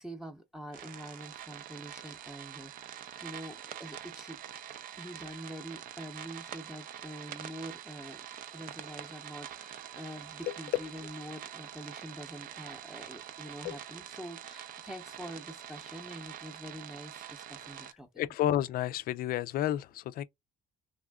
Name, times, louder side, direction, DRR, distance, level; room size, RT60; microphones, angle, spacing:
voice 1, 0.0-4.4 5.0-8.2 8.5-18.1, right 1 dB, 5° right, 0.7 m, -45 dB
sound 1, 0.7-17.9, right 10 dB, 55° right, 0.5 m, -45 dB
voice 2, 10.4-10.8 13.6-13.8 17.7-17.9 18.2-20.2, left 12 dB, 60° left, 0.4 m, -31 dB
3.4 x 2.4 x 2.3 m
cardioid pair, 110°, 17 cm